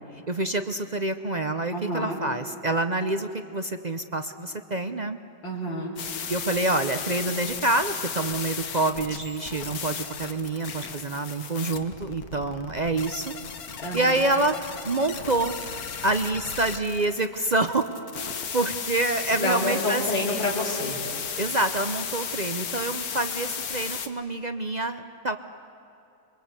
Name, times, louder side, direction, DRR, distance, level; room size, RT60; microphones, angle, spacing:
voice 1, 0.3-5.2 6.3-13.3 13.9-14.6 14.8-15.6 16.0-17.9 18.2-20.0 21.4-25.4, right 2 dB, 55° right, 8 dB, 0.4 m, -27 dB
voice 2, 1.7-2.2 5.4-5.9 13.8-14.3 19.4-21.0, left 1 dB, 80° left, -3 dB, 4.7 m, -28 dB
sound 1, 6.0-24.1, left 7 dB, 60° left, 1.6 m, -35 dB
26.5 x 23.5 x 8.3 m, 2.9 s
omnidirectional pair, 2.0 m